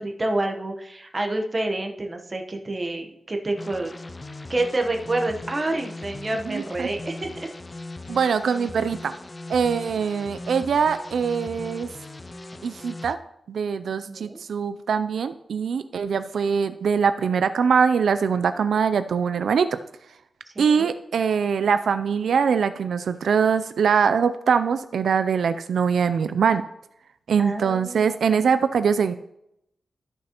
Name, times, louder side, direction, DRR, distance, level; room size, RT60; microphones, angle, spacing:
voice 1, 0.0-3.9 4.5-7.5 14.1-14.4 20.5-20.9 27.4-28.4, right 2 dB, 25° right, 3 dB, 1.0 m, -28 dB
sound 1, 3.6-13.2, left 2 dB, 25° left, 0.4 m, -39 dB
voice 2, 6.5-6.9 8.1-9.1 9.5-11.9 12.6-13.2 13.5-19.8 20.6-26.7 27.3-29.1, right 6 dB, 90° right, 11 dB, 0.4 m, -22 dB
13.0 x 6.3 x 2.9 m, 0.80 s
wide cardioid pair, 140°, 0 cm